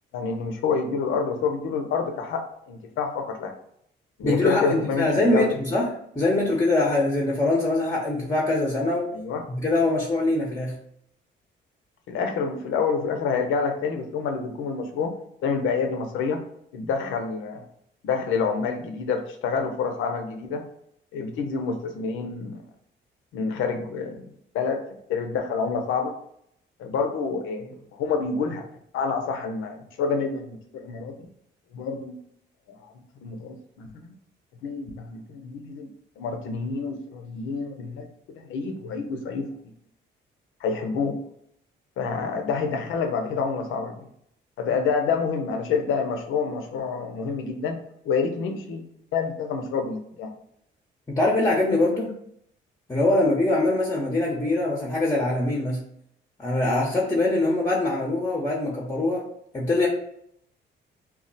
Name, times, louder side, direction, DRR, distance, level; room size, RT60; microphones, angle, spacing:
voice 1, 0.1-3.6 4.2-5.6 9.1-9.4 12.1-15.1 15.4-16.4 16.7-17.6 18.0-20.6 21.1-22.6 23.3-24.8 25.1-26.1 26.8-28.7 28.9-31.1 31.7-32.1 32.7-32.9 33.2-34.1 34.6-35.9 36.2-38.1 38.3-39.7 40.6-41.2 42.0-44.0 44.6-47.8 48.0-48.8 49.1-50.3, left 5 dB, 85° left, 5 dB, 0.6 m, -28 dB
voice 2, 4.2-5.9 6.2-9.1 9.5-10.8 51.1-52.1 52.9-55.8 56.4-59.2 59.5-59.9, left 2 dB, 15° left, -2 dB, 0.7 m, -23 dB
2.3 x 2.1 x 3.9 m, 0.70 s
cardioid pair, 90°, 20 cm